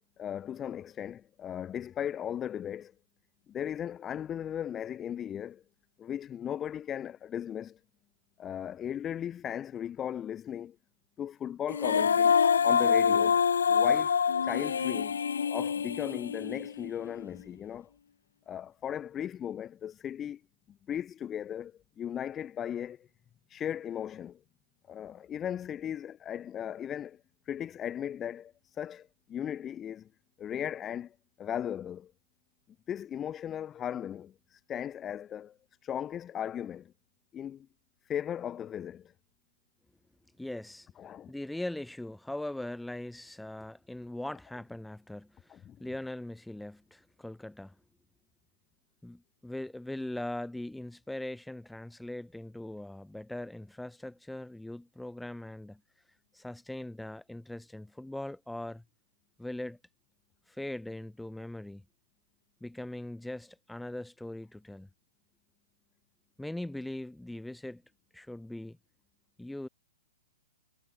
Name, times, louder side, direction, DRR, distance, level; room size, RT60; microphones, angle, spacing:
voice 1, 0.2-2.9 3.5-5.6 6.0-7.8 8.4-10.8 11.2-12.4 12.6-14.2 14.4-15.2 15.5-17.9 18.5-20.4 20.7-23.1 23.5-24.4 24.9-27.2 27.5-30.1 30.4-32.1 32.9-35.6 35.8-36.9 37.3-37.7 38.1-39.1 41.0-41.3 45.5-45.8, left 9 dB, 20° left, 0.8 m, -37 dB
Female singing, 11.7-16.9, left 7 dB, 75° left, 1.5 m, -26 dB
voice 2, 40.4-40.9 41.3-47.7 49.0-55.8 56.3-58.8 59.4-59.8 60.5-61.8 62.6-64.9 66.4-67.8 68.1-68.8 69.4-69.7, left 1 dB, 5° left, 2.6 m, -40 dB
hypercardioid pair, 125°, 0 cm